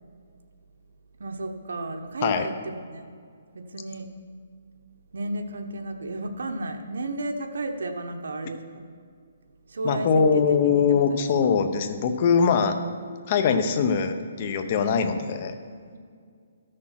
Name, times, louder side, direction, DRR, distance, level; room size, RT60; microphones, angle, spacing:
voice 1, 1.2-3.1 3.5-4.1 5.1-8.8 9.7-10.9 14.8-15.2, right 2 dB, 85° right, 4 dB, 1.0 m, -33 dB
voice 2, 9.8-12.8 13.3-15.5, left 6 dB, 30° left, 8 dB, 0.7 m, -22 dB
13.0 x 6.5 x 5.8 m, 2.1 s
hypercardioid pair, 170°, 0 cm